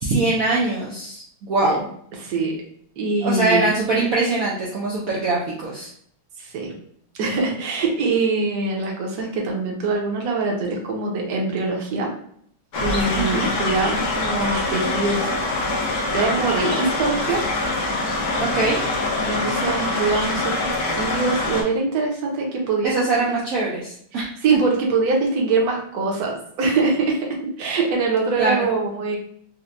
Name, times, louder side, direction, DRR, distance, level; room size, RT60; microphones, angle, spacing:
voice 1, 0.0-1.9 3.2-5.9 13.2-13.5 18.4-18.8 22.8-24.6 28.4-28.7, right 3 dB, 75° right, -5 dB, 0.7 m, -22 dB
voice 2, 2.2-2.5 3.0-3.7 6.4-6.7 7.2-12.1 12.8-15.3 16.1-17.4 17.9-18.0 19.3-23.2 24.1-29.2, right 3 dB, 60° right, 0 dB, 1.1 m, -23 dB
sound 1, 12.7-21.6, left 2 dB, 85° left, 0.6 m, -24 dB
4.3 x 2.1 x 2.5 m, 0.65 s
omnidirectional pair, 2.2 m